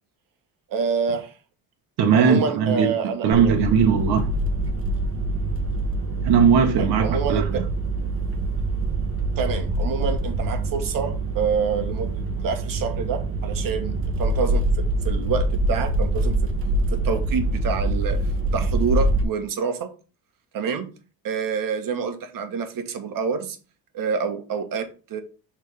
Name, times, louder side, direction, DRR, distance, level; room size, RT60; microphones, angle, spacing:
voice 1, 0.7-1.3 2.1-3.6 6.8-7.6 9.4-16.5 16.9-18.2 18.5-19.9 20.5-20.9 21.2-23.6 23.9-25.2, right 6 dB, 60° right, 1.4 m, -27 dB
voice 2, 2.0-2.9 3.2-4.3 6.2-7.6, right 6 dB, 80° right, 1.3 m, -19 dB
sound 1, 3.3-19.2, right 1 dB, 35° right, 1.5 m, -25 dB
6.6 x 3.7 x 5.2 m
cardioid pair, 115°, 38 cm